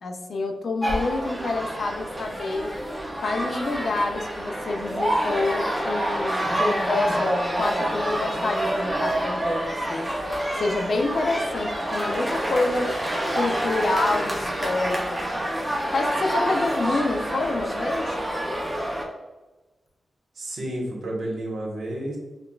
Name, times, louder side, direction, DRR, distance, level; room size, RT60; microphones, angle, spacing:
voice 1, 0.0-2.7 3.2-10.1 10.6-12.9 13.4-15.3 15.9-18.2, left 3 dB, 55° left, 4 dB, 0.4 m, -27 dB
sound 1, 0.8-19.0, right 1 dB, 5° right, 0.6 m, -27 dB
voice 2, 20.3-22.2, right 1 dB, 75° right, -2 dB, 1.1 m, -31 dB
5.7 x 2.3 x 2.3 m, 1.1 s
wide cardioid pair, 160°, 0 cm